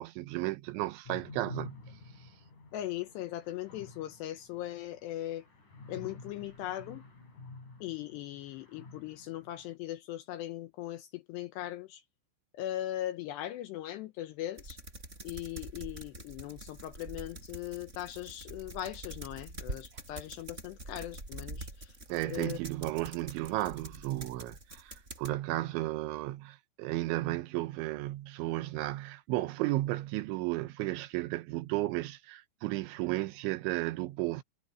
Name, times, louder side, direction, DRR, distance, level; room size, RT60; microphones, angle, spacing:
voice 1, 0.0-1.8 22.1-34.4, right 18 dB, 80° right, 3.1 m, -34 dB
sound 1, 1.1-9.7, left 3 dB, 40° left, 8.6 m, -50 dB
voice 2, 2.7-5.5 5.9-7.0 7.8-12.0 12.5-14.8 15.2-22.0 22.2-22.6, left 13 dB, 80° left, 2.6 m, -39 dB
sound 2, 14.6-25.3, right 2 dB, 15° right, 6.1 m, -45 dB
omnidirectional pair, 5.7 m